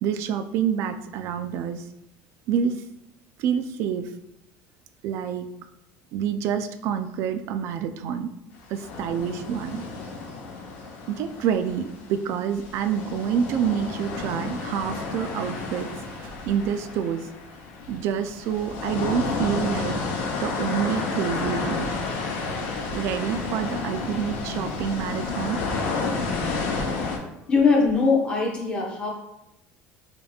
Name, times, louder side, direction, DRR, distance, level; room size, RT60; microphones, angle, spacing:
voice 1, 0.0-1.8 2.5-2.8 3.4-4.1 5.0-5.5 6.1-8.3 8.7-9.9 11.1-15.9 16.2-17.3 17.9-20.0 20.4-21.9 22.9-25.6, right 8 dB, 55° right, 9 dB, 0.3 m, -27 dB
sound 1, 8.7-12.2 12.5-27.2, left 4 dB, 80° left, 0.8 m, -31 dB
voice 2, 27.5-29.1, left 4 dB, 20° left, -2 dB, 0.9 m, -22 dB
5.1 x 2.9 x 2.3 m, 0.86 s
cardioid pair, 145°, 5 cm